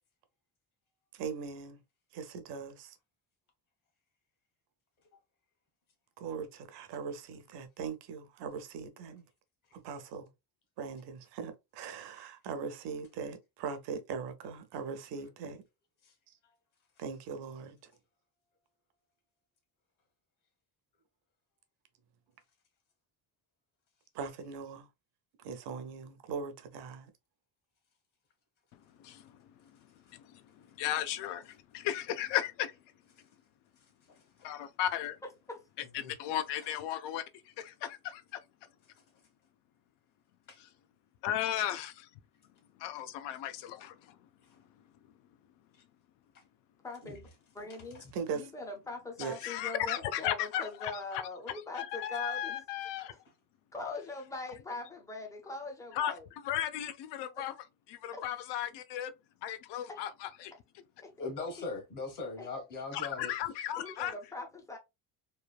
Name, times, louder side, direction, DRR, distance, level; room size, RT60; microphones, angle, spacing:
voice 1, 1.1-1.8 2.1-2.9 6.2-9.2 9.8-10.3 10.8-15.6 17.0-17.9 24.1-24.9 25.4-27.1 48.1-48.5 49.2-49.4, right 6 dB, 80° right, 0.7 m, -40 dB
voice 2, 28.7-29.4 30.1-32.7 34.4-35.2 35.9-37.2 37.6-38.4 40.6-40.7 41.2-42.1 42.8-44.2 49.2-51.2 51.7-53.1 55.9-56.2 56.4-57.5 57.9-59.1 59.4-60.5 62.9-64.1, left 11 dB, 90° left, 0.6 m, -35 dB
voice 3, 46.8-47.3 47.5-48.0 48.3-52.6 53.1-53.2 53.7-56.3 58.1-58.2 59.9-60.0 61.0-61.1 62.4-62.6 63.8-64.8, left 3 dB, 10° left, 0.4 m, -42 dB
voice 4, 61.2-63.3, left 3 dB, 50° left, 1.1 m, -40 dB
3.1 x 2.3 x 2.3 m
cardioid pair, 170°, 41 cm